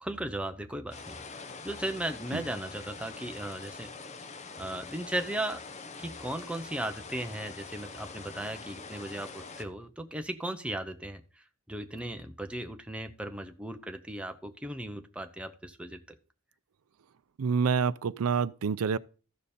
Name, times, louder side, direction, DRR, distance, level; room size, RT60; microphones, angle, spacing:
voice 1, 0.0-3.9 4.6-5.6 6.0-16.0, right 1 dB, 5° right, 0.7 m, -37 dB
sound 1, 0.9-9.6, left 4 dB, 30° left, 0.8 m, -44 dB
voice 2, 17.4-19.0, right 6 dB, 80° right, 0.4 m, -27 dB
14.0 x 5.2 x 4.2 m
head